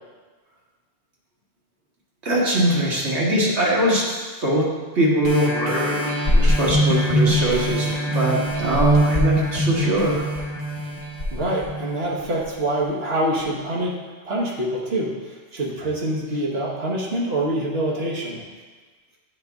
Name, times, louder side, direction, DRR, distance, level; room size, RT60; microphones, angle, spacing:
voice 1, 2.2-4.7 4.9-10.2, right 1 dB, 80° right, -5 dB, 1.7 m, -21 dB
sound 1, 5.2-12.4 13.0-13.1, equal, 45° left, 1.3 m, -23 dB
voice 2, 11.3-14.0 14.2-18.4, right 1 dB, 65° right, -3 dB, 1.3 m, -25 dB
8.7 x 3.9 x 3.5 m, 1.4 s
omnidirectional pair, 1.1 m